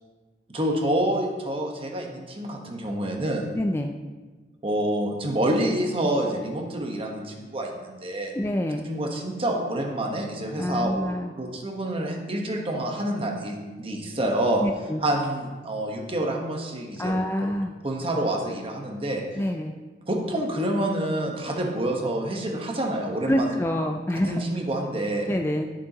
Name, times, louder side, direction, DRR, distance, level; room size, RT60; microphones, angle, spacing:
voice 1, 0.5-3.5 4.6-8.3 8.8-11.0 11.4-14.6 15.0-17.2 17.8-19.2 20.1-23.6 24.3-25.3, right 1 dB, 30° right, 1 dB, 1.2 m, -27 dB
voice 2, 3.5-3.9 8.3-8.9 10.6-11.3 14.6-15.0 17.0-17.7 19.4-19.7 23.3-24.4 25.3-25.7, left 1 dB, 15° left, 4 dB, 0.3 m, -26 dB
11.5 x 7.2 x 2.9 m, 1.3 s
head